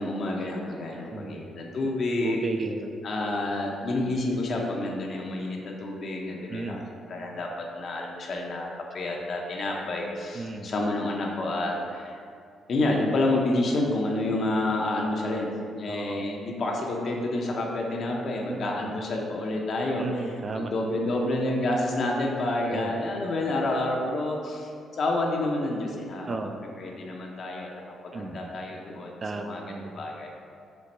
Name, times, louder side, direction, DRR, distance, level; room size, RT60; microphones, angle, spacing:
voice 1, 0.0-2.4 3.0-6.8 7.1-7.5 7.7-12.2 12.7-15.5 15.7-26.3 26.8-30.3, left 2 dB, 55° left, 0 dB, 0.7 m, -29 dB
voice 2, 1.1-1.5 1.8-1.9 2.2-2.9 6.5-6.8 10.3-10.7 15.9-16.2 18.5-18.9 20.0-20.7 22.6-22.9 26.3-26.6 28.1-28.5 29.2-29.9, right 3 dB, 35° right, 6 dB, 0.3 m, -34 dB
4.5 x 2.5 x 4.2 m, 2.3 s
cardioid pair, 90°, 0 cm